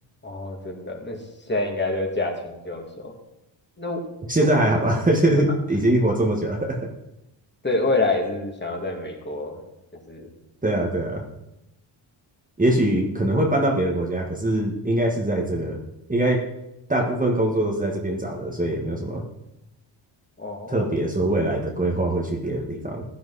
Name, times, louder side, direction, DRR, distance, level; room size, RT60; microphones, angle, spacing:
voice 1, 0.2-1.2 1.5-3.1 3.8-4.0 4.4-4.5 7.6-9.6 10.1-10.3 20.4-20.9, left 2 dB, 20° left, 1 dB, 2.6 m, -27 dB
voice 2, 4.3-6.9 10.6-11.2 12.6-15.8 16.1-16.5 16.9-19.2 20.7-23.0, right 1 dB, 15° right, 0 dB, 1.8 m, -22 dB
16.0 x 10.5 x 4.2 m, 0.90 s
cardioid pair, 105°, 50 cm